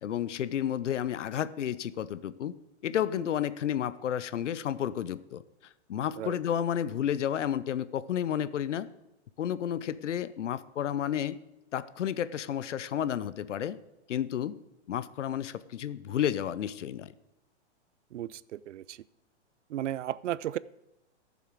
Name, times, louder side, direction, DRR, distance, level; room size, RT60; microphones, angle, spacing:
voice 1, 0.0-2.5 2.8-5.4 5.9-8.9 9.4-11.4 11.7-13.8 14.1-14.6 14.9-17.1, left 10 dB, 85° left, 17 dB, 0.7 m, -31 dB
voice 2, 18.1-19.0 19.7-20.6, right 12 dB, 85° right, 21 dB, 0.5 m, -34 dB
14.0 x 7.1 x 4.7 m, 0.93 s
hypercardioid pair, 130°, 35 cm